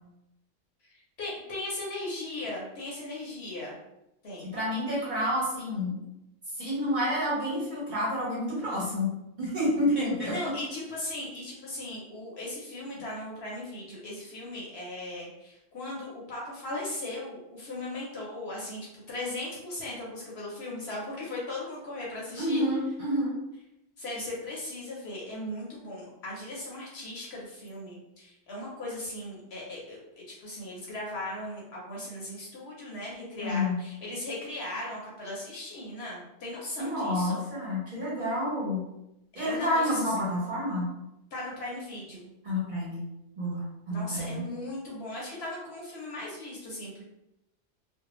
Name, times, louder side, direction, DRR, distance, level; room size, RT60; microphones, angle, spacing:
voice 1, 0.8-3.8 4.2-4.5 5.0-5.1 10.2-22.6 24.0-37.4 39.4-40.1 41.3-42.3 43.9-47.0, left 1 dB, 60° left, -4 dB, 0.9 m, -38 dB
voice 2, 4.4-6.0 6.6-9.1 9.4-10.3 22.4-23.4 33.4-33.8 36.8-38.8 39.3-40.9 42.4-43.0 43.4-44.4, left 1 dB, 40° right, -7 dB, 0.9 m, -29 dB
2.5 x 2.0 x 2.9 m, 0.88 s
omnidirectional pair, 1.3 m